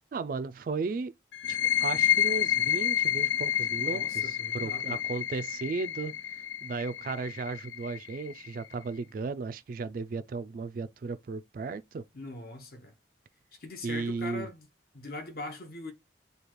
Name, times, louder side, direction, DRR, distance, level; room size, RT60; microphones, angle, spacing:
voice 1, 0.1-1.1 1.5-6.1 6.6-12.0 13.8-14.5, right 4 dB, 50° right, 0.3 m, -35 dB
sound 1, 1.3-8.7, left 10 dB, 90° left, 0.4 m, -29 dB
voice 2, 3.8-5.0 12.1-12.9 13.6-14.7 14.9-15.9, left 2 dB, 55° left, 0.9 m, -41 dB
6.6 x 2.3 x 3.0 m
head